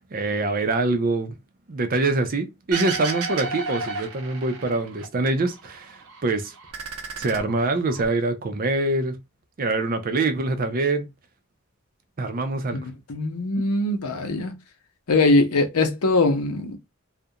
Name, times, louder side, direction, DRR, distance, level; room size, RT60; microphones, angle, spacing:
voice 1, 0.1-1.3 1.7-6.5 7.2-9.2 9.6-11.1 12.2-12.8, right 3 dB, 40° right, 0.4 m, -24 dB
sound 1, 2.7-5.1 5.4-6.2 6.5-8.1, right 3 dB, 80° right, 0.6 m, -32 dB
voice 2, 13.1-14.6 15.1-16.8, left 2 dB, 85° left, 0.6 m, -21 dB
2.4 x 2.1 x 2.7 m
head